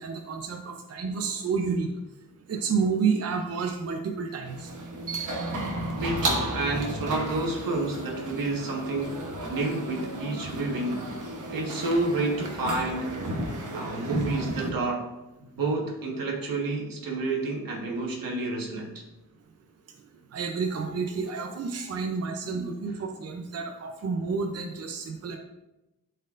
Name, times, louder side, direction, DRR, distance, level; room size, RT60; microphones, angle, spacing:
voice 1, 0.0-1.9 2.5-4.7 20.3-25.4, right 5 dB, 50° right, 3 dB, 0.6 m, -30 dB
sound 1, 4.4-14.7, right 1 dB, 65° right, 1.1 m, -33 dB
voice 2, 5.9-9.2 9.5-11.1 11.5-13.1 13.6-15.1 15.4-19.0, right 2 dB, 85° right, 0 dB, 1.5 m, -29 dB
12.0 x 4.4 x 2.5 m, 0.98 s
wide cardioid pair, 160°, 33 cm